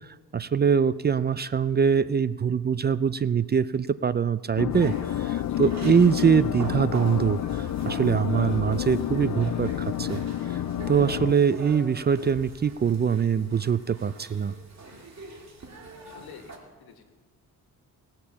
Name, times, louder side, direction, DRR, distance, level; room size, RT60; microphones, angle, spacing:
voice 1, 0.3-10.2 10.5-10.6 10.9-14.5, right 7 dB, 30° right, 16 dB, 0.4 m, -23 dB
sound 1, 4.6-11.3, left 12 dB, 55° left, 0.5 m, -29 dB
sound 2, 4.7-16.6, right 3 dB, 45° right, 2.5 m, -43 dB
voice 2, 16.0-17.1, left 7 dB, 85° left, 6 dB, 1.6 m, -49 dB
19.0 x 6.6 x 7.0 m, 1.4 s
cardioid pair, 75°, 37 cm